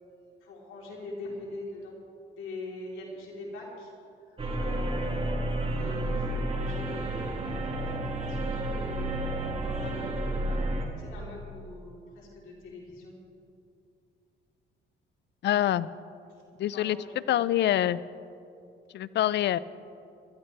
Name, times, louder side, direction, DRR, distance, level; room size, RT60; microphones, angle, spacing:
voice 1, 0.5-1.9 2.4-3.6 4.6-5.4 5.8-7.5 8.6-9.1 9.6-10.6 11.0-13.2 16.7-17.1, left 2 dB, 85° left, -3 dB, 3.6 m, -42 dB
sound 1, 4.4-10.8, right 1 dB, 30° right, 2.1 m, -31 dB
voice 2, 15.4-15.9 16.6-18.0 18.9-19.6, left 12 dB, 60° left, 18 dB, 0.4 m, -26 dB
20.5 x 13.5 x 3.4 m, 2.6 s
cardioid pair, 90°, 20 cm